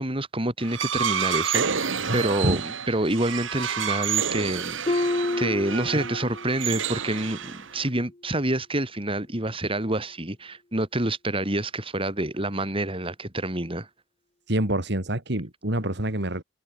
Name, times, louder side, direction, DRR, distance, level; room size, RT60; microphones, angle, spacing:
voice 1, 0.0-5.1 5.4-13.9, right 1 dB, 30° right, 4.0 m, -27 dB
sound 1, 0.6-7.9, right 7 dB, 80° right, 1.5 m, -29 dB
voice 2, 2.1-2.6 14.5-16.4, right 1 dB, 60° right, 3.4 m, -27 dB
Harp, 4.9-6.6 7.0-7.4 7.9-8.1, left 2 dB, 30° left, 0.9 m, -29 dB
head